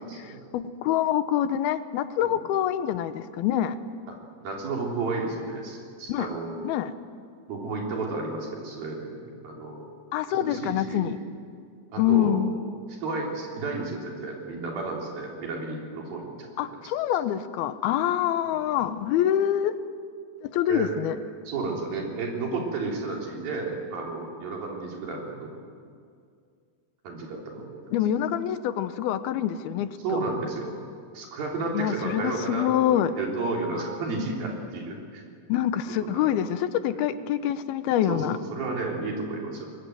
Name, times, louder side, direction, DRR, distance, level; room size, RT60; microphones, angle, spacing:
voice 1, 0.0-0.4 2.2-2.4 4.1-4.2 4.4-6.7 7.5-9.9 10.3-11.2 11.9-12.5 13.0-16.7 18.5-18.6 20.7-21.0 21.5-25.6 27.0-27.8 30.0-30.7 31.1-35.2 36.0-36.3 36.9-37.0 38.1-39.6, right 3 dB, 75° right, -1 dB, 5.4 m, -32 dB
voice 2, 0.5-3.8 6.1-6.3 6.6-6.9 10.1-11.2 12.0-12.6 16.6-19.8 20.4-21.2 27.9-29.9 31.7-33.1 35.5-38.4, left 11 dB, 85° left, 12 dB, 2.9 m, -25 dB
23.0 x 21.0 x 9.3 m, 2.2 s
omnidirectional pair, 4.3 m